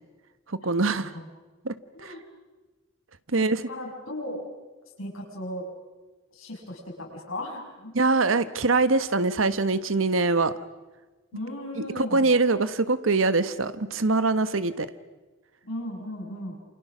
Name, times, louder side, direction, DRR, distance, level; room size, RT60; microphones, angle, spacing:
voice 1, 0.5-1.1 1.6-1.8 2.0-2.1 3.3-3.6 7.9-10.5 11.8-14.9, right 3 dB, 75° right, 13 dB, 1.3 m, -23 dB
voice 2, 3.7-4.5 5.0-5.6 6.3-7.9 8.3-8.4 11.3-12.3 15.6-16.6, left 1 dB, 85° left, 0 dB, 6.6 m, -36 dB
28.5 x 28.0 x 6.2 m, 1.2 s
head